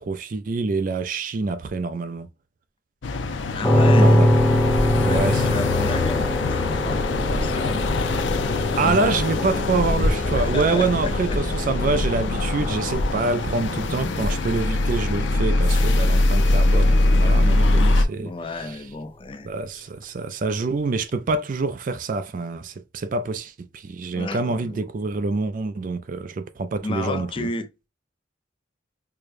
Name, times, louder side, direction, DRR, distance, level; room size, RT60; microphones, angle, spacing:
voice 1, 0.0-2.3 4.0-4.4 5.1-5.7 8.7-18.8 19.4-27.5, right 3 dB, 45° right, 0.4 m, -26 dB
sound 1, 3.0-18.1, left 2 dB, 80° left, 0.5 m, -22 dB
voice 2, 3.5-4.2 4.9-8.1 8.7-9.2 10.4-11.4 18.1-19.5 19.7-19.8 24.1-24.8 26.8-27.9, left 2 dB, 30° left, 0.4 m, -32 dB
sound 2, 3.6-17.4, left 1 dB, 10° left, 0.8 m, -25 dB
4.8 x 2.2 x 2.5 m
head